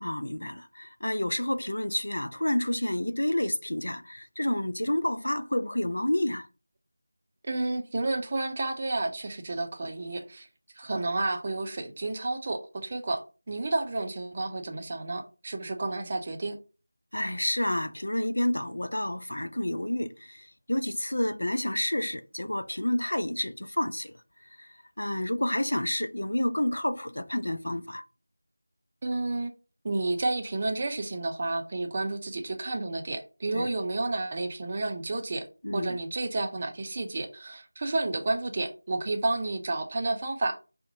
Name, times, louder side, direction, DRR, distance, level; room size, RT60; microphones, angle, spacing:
voice 1, 0.0-6.5 17.1-24.1 24.6-24.7 25.0-28.0 33.5-33.7 35.6-36.0, left 1 dB, 75° left, 0.4 m, -29 dB
voice 2, 7.5-10.5 10.8-16.6 29.0-29.5 29.8-35.5 35.7-40.6, right 2 dB, 30° right, 0.5 m, -31 dB
3.9 x 2.1 x 2.6 m
figure-of-eight pair, 170°, 0 cm